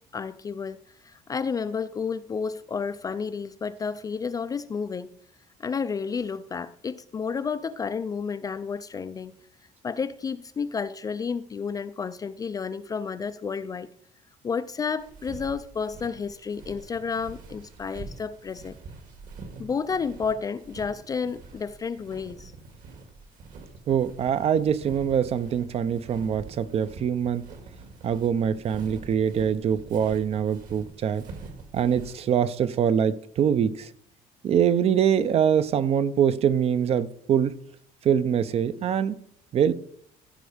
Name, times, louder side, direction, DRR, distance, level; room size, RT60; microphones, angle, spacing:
voice 1, 0.1-5.2 5.6-9.4 9.8-13.9 14.4-18.8 19.6-22.5, left 5 dB, 25° left, 0.3 m, -31 dB
Walk footsteps, 15.0-32.3, right 3 dB, 60° right, 2.1 m, -45 dB
voice 2, 23.9-27.5 28.0-31.2 31.7-33.9 34.4-37.5 38.0-39.2 39.5-39.7, right 8 dB, 40° right, 0.5 m, -24 dB
15.5 x 5.3 x 5.0 m
cardioid pair, 165°, 16 cm